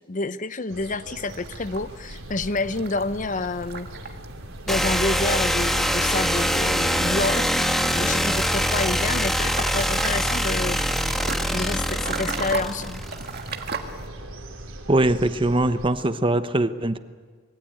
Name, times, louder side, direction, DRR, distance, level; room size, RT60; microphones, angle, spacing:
voice 1, 0.0-4.2 4.7-7.5 7.9-11.1 11.5-13.0, left 3 dB, 40° left, 0.8 m, -28 dB
sound 1, 0.7-15.9, right 1 dB, 90° right, 3.6 m, -41 dB
sound 2, 1.2-14.1, right 4 dB, 50° right, 1.8 m, -38 dB
sound 3, 4.7-13.4, equal, ahead, 1.4 m, -24 dB
voice 2, 14.9-17.0, right 1 dB, 25° right, 0.9 m, -21 dB
25.0 x 21.5 x 9.2 m
head